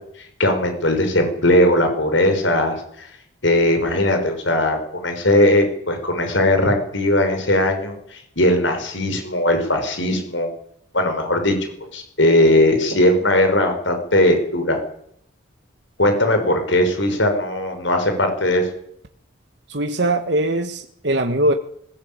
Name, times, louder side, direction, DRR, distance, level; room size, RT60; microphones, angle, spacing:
voice 1, 0.4-3.1 3.4-10.5 10.9-11.5 11.9-14.8 16.0-18.7, left 1 dB, 70° left, 6 dB, 5.7 m, -19 dB
voice 2, 19.7-21.5, right 1 dB, 60° right, 6 dB, 1.5 m, -21 dB
20.5 x 20.0 x 8.9 m, 0.70 s
head